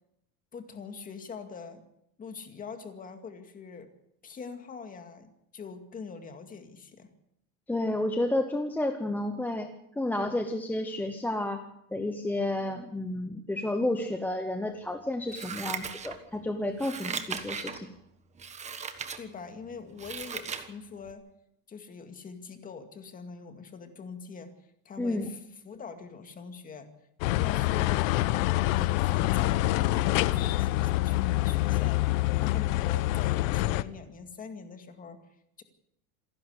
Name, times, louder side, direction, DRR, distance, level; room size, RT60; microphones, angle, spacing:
voice 1, 0.5-1.8 2.2-3.9 4.2-7.1 19.2-21.3 21.7-24.5 24.9-26.9 27.2-28.2 28.7-32.1 32.4-35.3 35.6-35.7, left 5 dB, 20° left, 7 dB, 2.1 m, -43 dB
voice 2, 7.7-9.7 10.0-11.6 11.9-17.9 25.0-25.3, left 1 dB, 5° left, 5 dB, 0.9 m, -31 dB
Scissors, 15.3-16.4 16.8-17.8 18.4-19.2 19.6-20.7 21.1-21.2, right 6 dB, 15° right, 1.4 m, -37 dB
sound 1, 27.2-33.8, left 17 dB, 70° left, 1.0 m, -26 dB
27.5 x 11.5 x 8.2 m, 0.78 s
cardioid pair, 165°, 41 cm